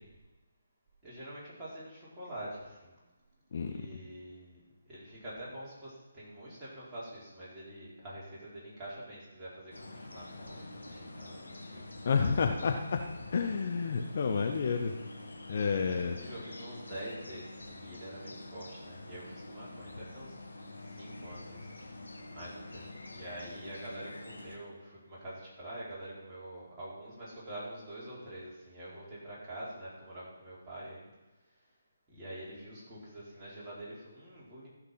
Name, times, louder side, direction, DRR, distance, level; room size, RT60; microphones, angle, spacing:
voice 1, 1.0-2.9 3.6-11.9 15.5-20.3 20.8-31.1 32.1-34.7, right 1 dB, 15° right, -9 dB, 4.3 m, -46 dB
sound 1, 9.7-24.6, left 2 dB, 75° left, 1.9 m, -47 dB
voice 2, 12.0-13.0 13.3-14.9 15.5-16.2, left 5 dB, 45° left, 4 dB, 0.8 m, -29 dB
14.5 x 5.9 x 5.7 m, 1.1 s
figure-of-eight pair, 145°, 0 cm